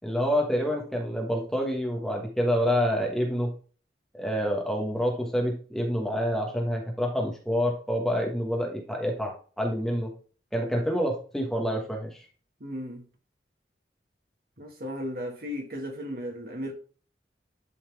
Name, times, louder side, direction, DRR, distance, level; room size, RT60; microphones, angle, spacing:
voice 1, 0.0-3.5 4.1-10.1 10.5-12.2, equal, ahead, 1.3 m, -27 dB
voice 2, 12.6-13.0 14.6-16.7, equal, 55° right, 1.7 m, -35 dB
11.0 x 4.1 x 3.4 m
head